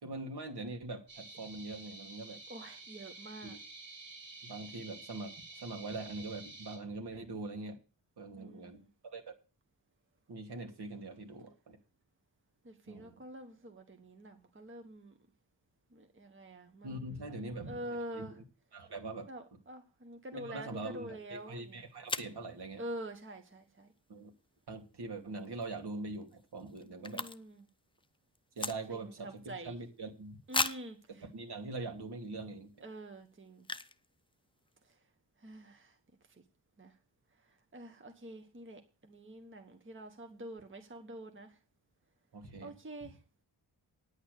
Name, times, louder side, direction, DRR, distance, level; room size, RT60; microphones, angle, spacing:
voice 1, 0.0-2.4 3.4-3.6 4.4-7.8 8.2-9.2 10.3-11.8 12.9-13.1 16.8-18.4 18.7-19.3 20.3-22.8 24.1-24.3 24.7-27.2 28.6-30.4 31.1-32.7 42.3-42.7 43.0-43.1, right 2 dB, 65° right, 2.6 m, -43 dB
sound 1, 1.1-6.8, right 3 dB, 85° right, 5.0 m, -50 dB
voice 2, 2.5-3.6 8.4-8.9 12.6-15.1 15.9-18.3 19.3-21.8 22.8-23.9 27.1-27.6 28.9-29.7 30.5-31.0 32.8-33.7 35.4-35.9 36.8-36.9 37.7-41.5 42.6-43.2, right 1 dB, 30° right, 1.3 m, -46 dB
sound 2, 21.4-21.5 22.1-22.4 25.4-25.6 25.9-26.0 26.2-27.7 27.9-29.2 29.7-29.8 30.5-31.0 31.6-31.7 32.2-32.4 33.6-34.0 34.3-34.4 34.6-34.9, left 3 dB, 10° left, 0.6 m, -37 dB
9.8 x 8.6 x 6.6 m
wide cardioid pair, 105°, 42 cm